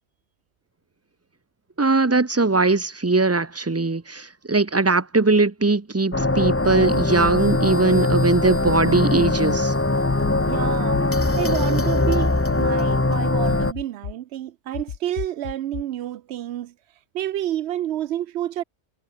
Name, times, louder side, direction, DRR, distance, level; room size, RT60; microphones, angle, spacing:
voice 1, 1.8-9.7, right 3 dB, 15° right, 0.6 m, -20 dB
sound 1, 6.1-13.7, left 2 dB, 15° left, 0.8 m, -21 dB
sound 2, 7.0-7.3 7.9-8.2 8.6-8.8 9.2-9.6 10.1-10.4 10.9-11.0 11.5-11.9 12.5-13.0 13.5-14.1 14.7-15.8, left 8 dB, 85° left, 1.3 m, -32 dB
voice 2, 10.5-11.0 11.4-16.7 17.1-18.6, right 12 dB, 75° right, 0.8 m, -29 dB
omnidirectional pair, 1.2 m